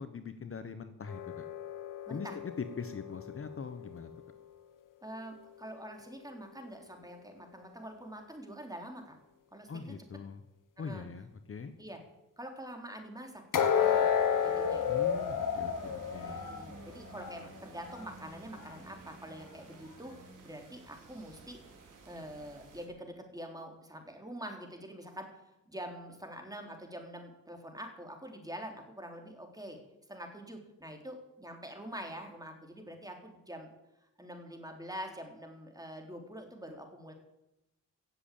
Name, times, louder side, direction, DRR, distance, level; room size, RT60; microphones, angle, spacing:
voice 1, 0.0-1.4 2.1-4.1 9.7-10.4 10.8-11.7 14.9-16.5, left 5 dB, 40° left, 10 dB, 1.1 m, -42 dB
sound 1, 1.1-4.2 13.5-17.4 17.8-18.0 18.6-18.7, left 8 dB, 75° left, 1.6 m, -32 dB
voice 2, 2.1-2.4 5.0-9.2 9.5-9.9 10.8-11.0 11.8-12.0 12.4-14.1 14.4-14.8 16.2-20.1 20.4-21.6 22.1-29.8 30.1-33.7 34.2-37.1, equal, 10° right, 3 dB, 3.6 m, -45 dB
sound 2, 13.7-22.9, right 3 dB, 70° right, 3.7 m, -52 dB
16.0 x 7.8 x 8.6 m, 0.90 s
cardioid pair, 80°, 32 cm